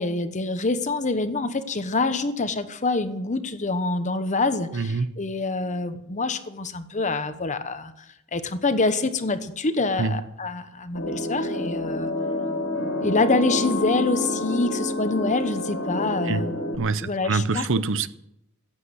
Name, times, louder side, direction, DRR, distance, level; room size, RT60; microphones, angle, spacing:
voice 1, 0.0-7.9 8.3-12.1 13.0-16.5 17.0-17.7, left 3 dB, 35° left, 1.1 m, -26 dB
voice 2, 4.7-5.1 10.0-10.2 16.2-16.5 16.8-18.1, right 4 dB, 65° right, 0.7 m, -25 dB
sound 1, 10.9-16.8, left 1 dB, 75° left, 2.3 m, -28 dB
15.5 x 8.3 x 8.0 m
head